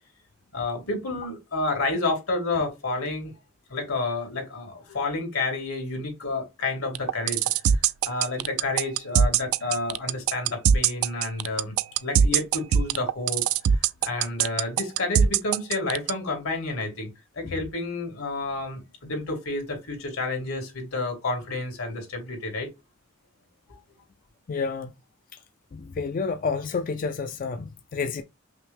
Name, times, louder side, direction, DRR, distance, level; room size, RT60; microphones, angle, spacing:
voice 1, 0.5-3.3 3.7-7.4 7.7-11.8 12.0-13.4 13.7-17.1 17.3-22.7 23.7-23.8, left 2 dB, 85° left, 2.3 m, -30 dB
sound 1, 7.0-16.1, right 8 dB, 80° right, 0.3 m, -21 dB
voice 2, 24.5-24.9 25.7-28.2, left 5 dB, 40° left, 0.3 m, -29 dB
5.7 x 2.0 x 3.3 m
head